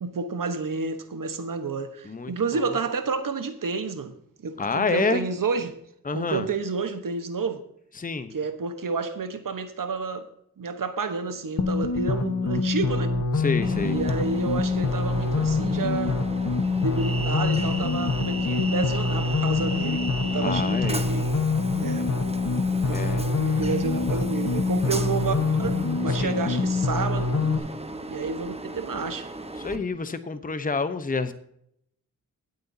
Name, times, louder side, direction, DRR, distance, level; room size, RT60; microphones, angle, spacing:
voice 1, 0.0-4.1 4.4-5.8 6.1-7.6 8.3-10.3 10.6-13.1 13.8-16.2 16.8-21.3 21.8-22.2 22.8-27.3 28.1-29.3 29.7-29.8, right 4 dB, 65° right, 9 dB, 1.2 m, -30 dB
voice 2, 2.0-2.6 4.6-5.2 6.0-6.5 8.0-8.3 13.4-14.0 20.4-21.1 22.9-23.2 26.1-26.4 29.6-31.3, left 4 dB, 25° left, 11 dB, 0.8 m, -28 dB
sound 1, 11.6-27.6, left 4 dB, 50° left, 1.2 m, -25 dB
Train, 13.6-29.8, right 2 dB, 15° right, 1.1 m, -36 dB
19.5 x 8.0 x 2.7 m, 0.73 s
cardioid pair, 60°, 35 cm